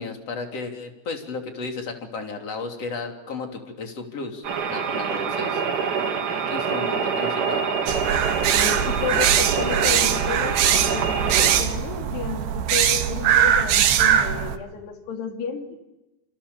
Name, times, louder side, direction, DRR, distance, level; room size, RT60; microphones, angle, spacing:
voice 1, 0.0-5.6 6.5-7.7, left 4 dB, 40° left, 3 dB, 3.9 m, -34 dB
sound 1, 4.4-11.6, right 6 dB, 50° right, 3.3 m, -26 dB
voice 2, 4.9-5.6 8.5-15.8, left 6 dB, 75° left, 3 dB, 4.7 m, -32 dB
sound 2, 7.9-14.6, right 9 dB, 85° right, 3.6 m, -21 dB
28.5 x 27.5 x 7.1 m, 0.98 s
omnidirectional pair, 4.8 m